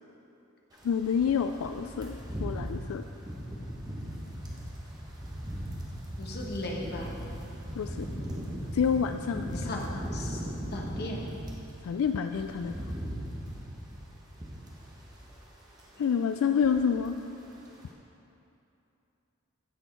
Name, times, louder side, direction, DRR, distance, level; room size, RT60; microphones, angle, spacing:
voice 1, 0.8-3.0 7.8-8.1 8.7-9.9 11.8-12.7 16.0-17.2, left 7 dB, 85° left, 8 dB, 0.3 m, -28 dB
sound 1, 0.8-11.7 12.1-15.5 15.7-16.0 16.3-17.1 17.4-17.6, equal, 20° right, 1.4 m, -38 dB
voice 2, 6.2-7.1 9.5-11.3 12.3-12.4 16.0-16.1, left 1 dB, 50° left, -1 dB, 1.4 m, -38 dB
15.5 x 6.2 x 4.5 m, 2.8 s
head